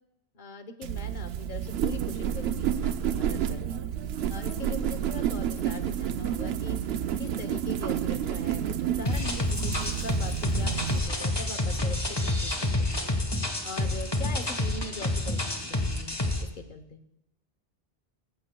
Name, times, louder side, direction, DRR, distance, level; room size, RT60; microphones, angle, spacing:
voice 1, 0.3-3.8 4.3-6.8 7.2-13.0 13.6-16.1 16.4-17.0, left 3 dB, 50° left, 8 dB, 1.1 m, -41 dB
sound 1, 0.8-11.0, right 9 dB, 75° right, 0.8 m, -30 dB
sound 2, 9.1-16.4, left 1 dB, 25° left, 1.2 m, -28 dB
18.0 x 15.5 x 2.3 m, 0.84 s
omnidirectional pair, 1.1 m